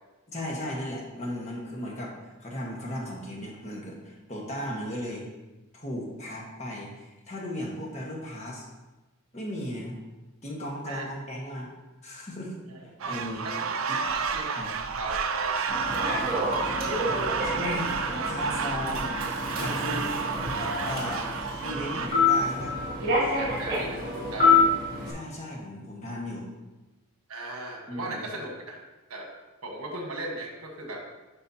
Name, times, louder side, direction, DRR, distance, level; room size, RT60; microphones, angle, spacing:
voice 1, 0.3-2.2 2.4-5.2 5.7-8.6 9.3-10.0 10.4-11.7 12.0-12.6 13.0-13.4 13.9-14.0 14.5-14.7 17.4-17.9 18.2-19.1 19.5-20.2 20.8-21.3 21.6-22.8 25.1-26.5 27.9-28.2, left 1 dB, 30° left, -2 dB, 1.4 m, -36 dB
sound 1, 13.0-22.1, right 5 dB, 65° right, 0.5 m, -31 dB
voice 2, 15.0-15.6 16.0-16.5 23.3-24.6 27.3-28.8 29.1-29.3 29.6-31.0, right 2 dB, 80° right, 1 dB, 1.4 m, -37 dB
Human voice / Subway metro underground, 15.7-25.1, left 3 dB, 45° right, 2.2 m, -27 dB
9.6 x 5.5 x 2.8 m, 1.1 s
head